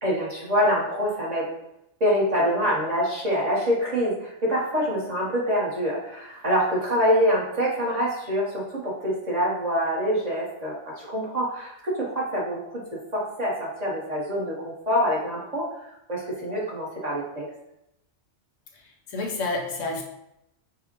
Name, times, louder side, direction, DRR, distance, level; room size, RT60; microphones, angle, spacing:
voice 1, 0.0-1.5 2.0-12.6 13.1-17.5, equal, 35° right, -5 dB, 0.8 m, -25 dB
voice 2, 19.1-20.0, left 2 dB, 75° left, 1 dB, 1.0 m, -29 dB
5.1 x 2.0 x 2.8 m, 0.82 s
omnidirectional pair, 1.3 m